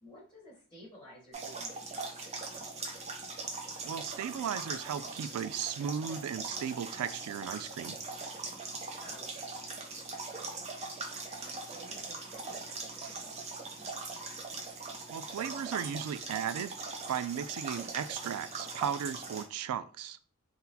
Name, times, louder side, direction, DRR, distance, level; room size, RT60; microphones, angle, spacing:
voice 1, 0.0-2.5 9.0-10.3 11.2-13.4, equal, 20° left, 1.5 m, -54 dB
sound 1, 1.3-19.4, right 3 dB, 30° right, 0.6 m, -41 dB
voice 2, 3.8-8.0 15.1-20.2, right 8 dB, 85° right, 0.3 m, -36 dB
3.9 x 2.1 x 2.7 m
head